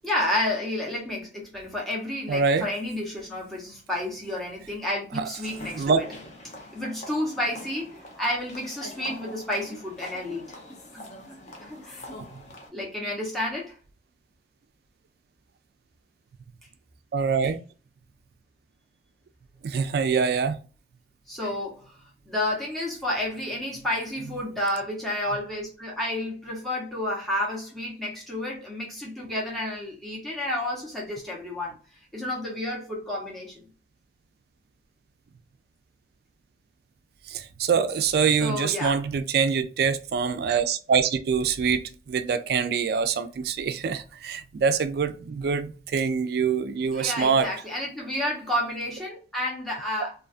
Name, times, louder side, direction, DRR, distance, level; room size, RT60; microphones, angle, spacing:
voice 1, 0.0-6.0 6.7-10.6 10.9-11.4 11.6-12.1 12.7-13.8 21.3-22.0 22.3-31.7 32.1-33.7 38.4-39.0 46.9-50.1, left 1 dB, ahead, 0.8 m, -30 dB
voice 2, 2.3-2.7 5.1-5.2 5.7-6.0 12.3-12.4 17.1-17.6 19.6-20.6 37.3-47.5 50.0-50.1, right 6 dB, 60° right, 0.3 m, -25 dB
sound 1, 5.4-12.7, left 1 dB, 40° left, 0.6 m, -44 dB
2.4 x 2.4 x 2.4 m
head